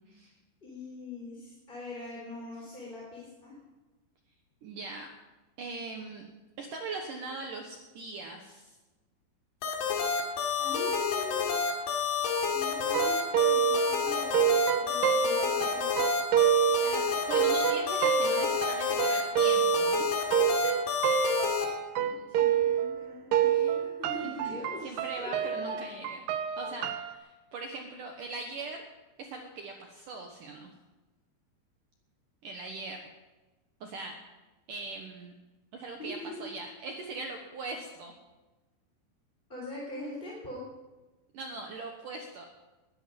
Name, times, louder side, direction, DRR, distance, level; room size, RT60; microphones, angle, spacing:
voice 1, 0.6-3.6 10.6-11.6 12.4-16.1 22.3-25.8 26.6-26.8 36.0-36.5 39.5-40.7, left 2 dB, 15° left, -5 dB, 3.2 m, -43 dB
voice 2, 4.6-5.1 5.6-6.3 6.6-8.8 16.8-20.1 22.0-22.3 24.2-24.6 24.8-26.2 26.6-28.8 29.2-30.7 32.4-33.0 33.8-34.2 34.7-35.3 35.7-38.1 41.3-42.5, right 3 dB, 65° right, 3 dB, 2.3 m, -40 dB
sound 1, 9.6-21.7, left 6 dB, 70° left, 4.4 m, -29 dB
sound 2, 12.9-23.0 23.3-27.1, right 10 dB, 85° right, 2.0 m, -28 dB
20.5 x 13.0 x 5.3 m, 1.1 s
omnidirectional pair, 5.2 m